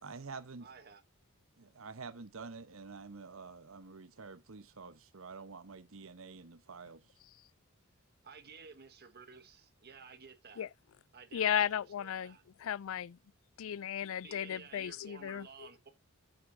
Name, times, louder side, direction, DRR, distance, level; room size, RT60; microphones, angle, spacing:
voice 1, 0.0-0.7 1.6-7.0, right 4 dB, 70° right, 1.0 m, -48 dB
voice 2, 0.6-1.0 8.2-10.7 11.1-12.4 14.2-15.9, right 5 dB, 50° right, 1.6 m, -54 dB
voice 3, 11.3-13.2 13.6-15.5, left 9 dB, 70° left, 0.4 m, -35 dB
8.9 x 8.1 x 2.7 m
head